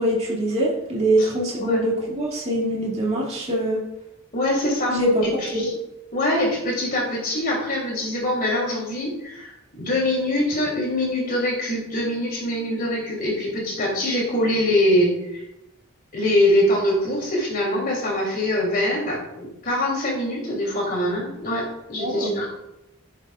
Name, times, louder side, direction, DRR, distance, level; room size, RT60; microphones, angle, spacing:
voice 1, 0.0-3.8 4.9-5.3 5.5-5.7 22.0-22.4, right 1 dB, 30° right, -5 dB, 2.6 m, -23 dB
voice 2, 4.3-5.7 6.1-15.4 16.1-22.5, left 1 dB, 45° left, -3 dB, 3.2 m, -24 dB
11.0 x 6.9 x 2.5 m, 0.89 s
head